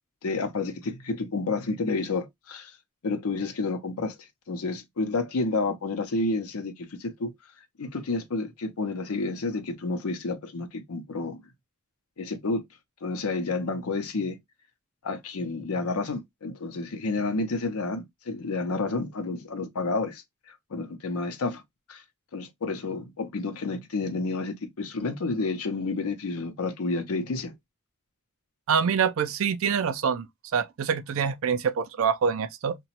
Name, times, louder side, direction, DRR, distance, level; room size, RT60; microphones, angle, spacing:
voice 1, 0.2-2.7 3.0-4.1 4.5-7.3 7.8-11.4 12.2-12.6 13.0-14.4 15.0-20.2 20.5-21.6 21.9-22.0 22.3-27.5, left 3 dB, 85° left, 0.6 m, -30 dB
voice 2, 28.7-30.3 30.5-32.8, right 6 dB, 65° right, 0.4 m, -25 dB
2.9 x 2.2 x 2.8 m
head